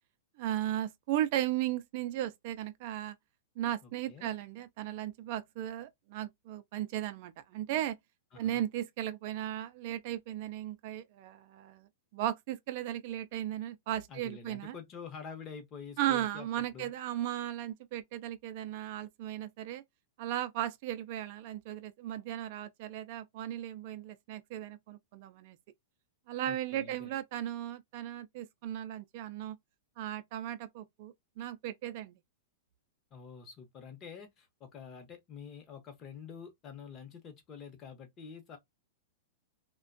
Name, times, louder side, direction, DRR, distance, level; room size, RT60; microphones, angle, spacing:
voice 1, 0.4-3.1 3.6-8.0 8.4-14.7 16.0-19.8 20.2-25.6 26.3-29.6 30.0-32.1, right 12 dB, 50° right, 0.3 m, -36 dB
voice 2, 3.8-4.3 8.3-8.6 14.1-16.9 26.5-27.1 33.1-38.6, left 6 dB, 30° left, 0.8 m, -47 dB
2.4 x 2.1 x 2.4 m
hypercardioid pair, 135°, 0 cm